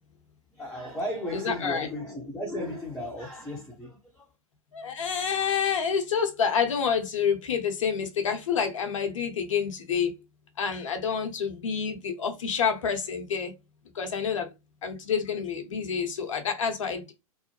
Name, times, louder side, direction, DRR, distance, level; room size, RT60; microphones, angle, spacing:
voice 1, 0.5-4.3, equal, 5° left, 0.7 m, -35 dB
voice 2, 1.3-1.9 4.7-10.1 10.6-13.5 13.9-14.5 14.8-17.1, left 6 dB, 60° left, 0.8 m, -28 dB
2.7 x 2.0 x 3.0 m
figure-of-eight pair, 105°, 18 cm